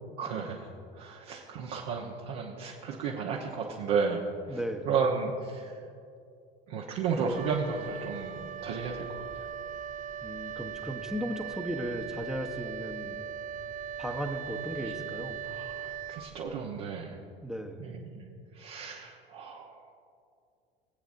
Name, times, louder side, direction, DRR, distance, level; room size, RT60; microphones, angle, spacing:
voice 1, 0.2-4.6 4.8-5.8 6.7-9.5 14.8-14.9 15.4-17.2 17.8-18.2 18.5-19.9, right 5 dB, 60° right, -3 dB, 1.1 m, -33 dB
voice 2, 4.5-4.9 10.2-13.2 14.0-15.5 17.4-17.9, equal, ahead, 3 dB, 1.0 m, -36 dB
Wind instrument woodwind instrument, 7.3-16.8, right 8 dB, 30° right, 0.5 m, -39 dB
22.0 x 8.2 x 2.6 m, 2.4 s
figure-of-eight pair, 70°, 29 cm